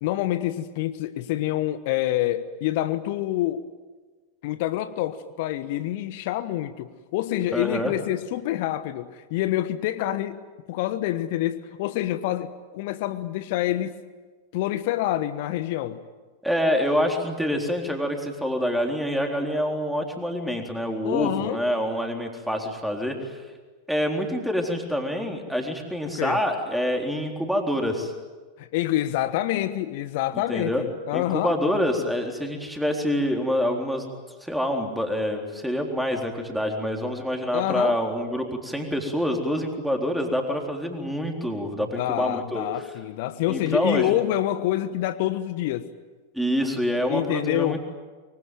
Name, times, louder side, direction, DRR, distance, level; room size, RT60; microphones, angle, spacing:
voice 1, 0.0-3.7 4.4-10.4 10.7-14.0 14.5-16.0 21.0-21.6 26.2-26.4 28.6-31.6 37.5-38.0 41.7-45.9 47.1-47.8, left 14 dB, 50° left, 13 dB, 1.2 m, -27 dB
voice 2, 7.5-7.9 16.4-23.4 23.9-28.1 30.5-30.8 31.1-34.0 34.4-42.7 43.5-44.2 46.3-47.8, equal, ahead, 2 dB, 3.9 m, -26 dB
25.0 x 24.0 x 9.2 m, 1.4 s
figure-of-eight pair, 90°, 0 cm